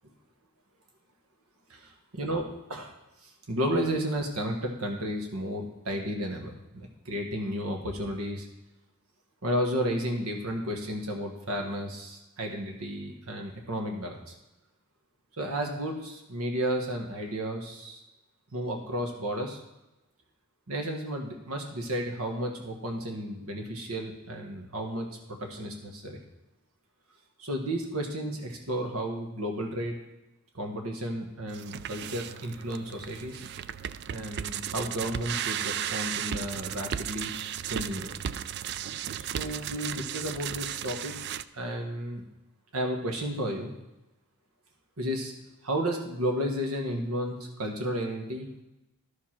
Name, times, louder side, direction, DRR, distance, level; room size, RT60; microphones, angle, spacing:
voice 1, 1.7-2.9 3.2-8.5 9.4-14.3 15.4-18.0 18.5-19.6 20.7-26.2 27.4-30.0 30.5-33.4 34.1-37.3 37.7-38.1 39.2-41.2 41.5-42.2 42.7-43.7 45.0-45.3 45.6-48.6, equal, 80° right, 2 dB, 1.5 m, -33 dB
sound 1, 31.5-41.4, right 9 dB, 50° right, 0.3 m, -35 dB
13.0 x 4.9 x 5.9 m, 0.98 s
head